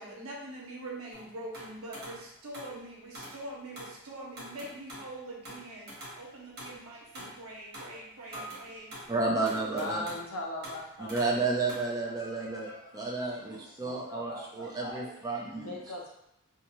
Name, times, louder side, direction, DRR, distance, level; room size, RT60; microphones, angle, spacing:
voice 1, 0.0-5.9 6.2-9.0, right 1 dB, 75° right, -3 dB, 0.8 m, -43 dB
sound 1, 1.1-2.8 3.1-3.4 3.7-4.0 4.4-5.1 5.4-7.4 7.7-8.0 8.3-9.1 9.5-10.3 10.6-10.8 11.1-11.4 11.7-11.8, equal, 45° right, 1.1 m, -45 dB
voice 2, 9.1-10.0 11.0-15.8, right 3 dB, 15° right, -3 dB, 0.4 m, -32 dB
voice 3, 9.7-13.0 13.4-15.1 15.6-16.2, left 1 dB, 80° left, -1 dB, 0.6 m, -41 dB
2.6 x 2.2 x 2.9 m, 0.79 s
head